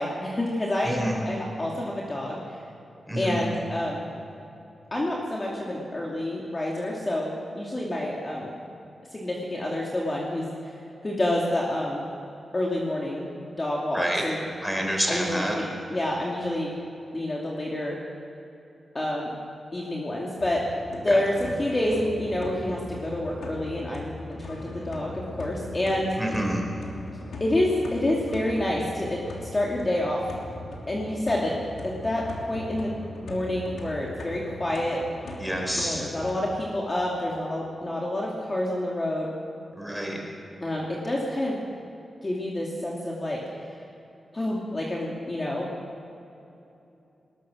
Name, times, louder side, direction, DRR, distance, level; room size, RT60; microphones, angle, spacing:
voice 1, 0.0-2.4 3.2-4.1 4.9-8.5 9.1-10.7 11.0-12.1 12.5-13.3 13.6-14.5 15.1-15.6 15.9-16.7 17.1-18.0 18.9-19.3 19.7-20.6 20.9-26.2 27.4-29.2 29.5-30.2 30.9-31.5 31.8-32.9 33.2-35.0 35.7-39.3 40.6-41.6 42.2-43.4 44.3-45.7, left 1 dB, 25° left, -3 dB, 2.8 m, -28 dB
voice 2, 0.8-1.1 3.1-3.4 13.9-14.2 14.6-15.6 21.1-21.2 26.2-26.6 35.4-36.0 39.7-40.2, equal, ahead, 0 dB, 4.8 m, -28 dB
sound 1, 20.4-36.3, left 2 dB, 85° left, 3.1 m, -40 dB
20.5 x 20.0 x 6.4 m, 2.8 s
wide cardioid pair, 115°, 0 cm